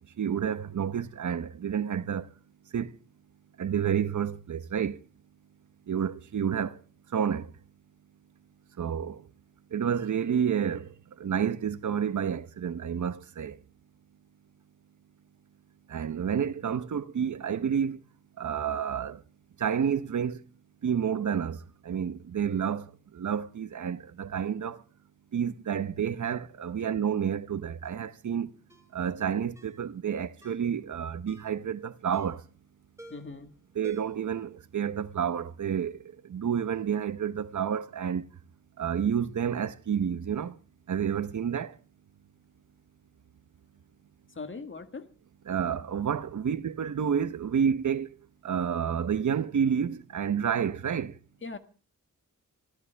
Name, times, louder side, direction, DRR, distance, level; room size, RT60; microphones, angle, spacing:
voice 1, 0.2-2.3 2.7-3.0 3.6-5.0 5.9-6.8 7.1-7.5 8.8-9.3 9.7-13.6 15.9-18.0 18.4-19.2 19.6-20.4 20.8-24.8 25.3-28.5 28.9-32.4 33.8-38.3 38.8-40.6 40.9-41.8 45.5-48.2 48.4-51.2, right 8 dB, 70° right, 0.9 m, -30 dB
Ringtone, 27.8-28.1 28.7-28.9 29.6-29.8 30.4-30.7 31.3-31.6 32.1-32.5 33.0-33.4 33.8-34.3 34.6-34.7, right 1 dB, 10° right, 4.2 m, -51 dB
voice 2, 33.1-33.5 44.3-45.1 51.4-51.6, left 4 dB, 40° left, 1.7 m, -40 dB
25.0 x 14.0 x 3.4 m
wide cardioid pair, 120°, 31 cm